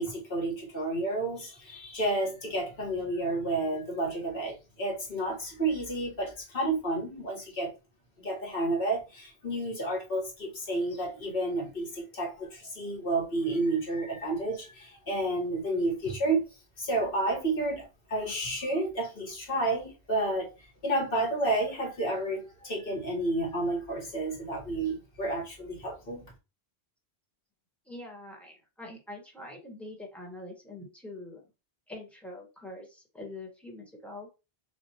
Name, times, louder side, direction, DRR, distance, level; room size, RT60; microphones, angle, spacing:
voice 1, 0.0-7.7 8.2-16.4 16.8-20.5 20.8-26.3, right 2 dB, 60° left, 1.6 m, -31 dB
voice 2, 27.9-31.5 31.9-34.3, left 2 dB, ahead, 1.4 m, -44 dB
6.7 x 2.5 x 2.9 m
omnidirectional pair, 1.1 m